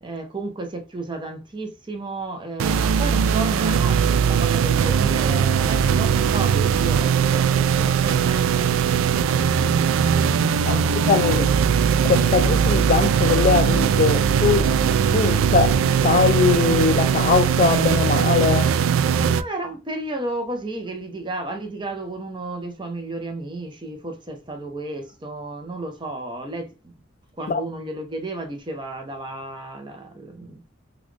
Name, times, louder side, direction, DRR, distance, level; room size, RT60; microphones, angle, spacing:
voice 1, 0.0-11.5 19.3-26.9 27.4-30.6, right 2 dB, 25° right, 0.7 m, -33 dB
sound 1, 2.6-19.4, right 7 dB, 80° right, 0.3 m, -20 dB
voice 2, 11.1-11.5 12.0-14.7 15.1-18.8 27.5-27.6, left 5 dB, 40° left, 0.3 m, -21 dB
4.0 x 2.3 x 3.1 m
head